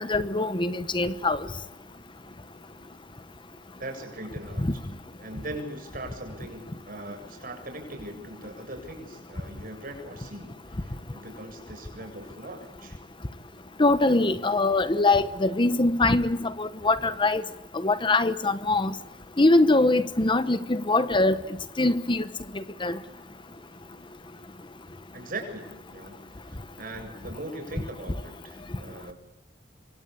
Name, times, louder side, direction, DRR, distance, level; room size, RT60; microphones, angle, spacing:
voice 1, 0.0-1.4 4.6-4.7 13.8-17.4 17.8-18.9 19.4-21.4 21.8-22.2 22.5-23.0, left 2 dB, 25° left, 13 dB, 1.0 m, -23 dB
voice 2, 3.8-4.9 5.2-13.0 25.1-29.1, right 1 dB, 50° right, 5 dB, 7.7 m, -40 dB
26.5 x 24.5 x 8.6 m, 0.97 s
head